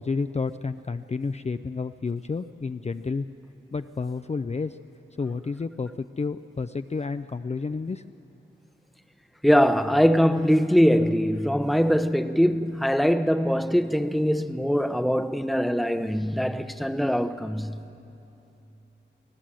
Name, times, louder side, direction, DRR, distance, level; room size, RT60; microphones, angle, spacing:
voice 1, 0.0-3.3 3.7-4.8 5.2-8.2, left 4 dB, 35° left, 0.4 m, -30 dB
voice 2, 9.4-17.8, equal, ahead, 0.7 m, -22 dB
24.0 x 15.5 x 7.6 m
wide cardioid pair, 55°, 20 cm